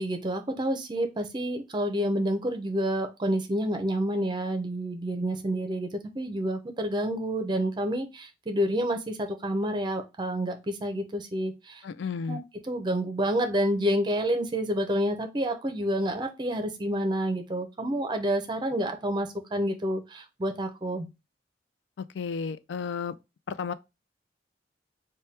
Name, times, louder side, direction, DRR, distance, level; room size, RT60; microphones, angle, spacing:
voice 1, 0.0-5.9 6.2-11.8 12.3-12.4 12.7-21.1, equal, 25° right, 0.6 m, -29 dB
voice 2, 11.8-12.4 22.0-23.1 23.5-23.7, left 5 dB, 80° left, 0.3 m, -33 dB
3.5 x 2.2 x 4.1 m
head